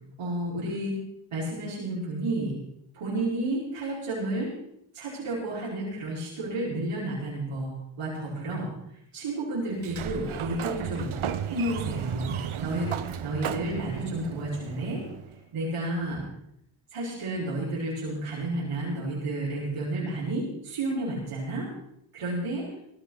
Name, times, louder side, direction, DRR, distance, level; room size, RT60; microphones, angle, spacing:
voice 1, 0.2-1.0 1.3-2.6 2.9-4.5 4.9-7.7 8.0-8.7 9.1-11.1 11.5-12.9 13.2-15.0 15.5-16.2 16.9-21.7 22.1-22.7, right 1 dB, 90° right, -7 dB, 5.5 m, -31 dB
Sliding door, 9.7-15.4, right 8 dB, 75° right, 1.1 m, -34 dB
18.5 x 15.0 x 4.1 m, 0.76 s
cardioid pair, 60°, 50 cm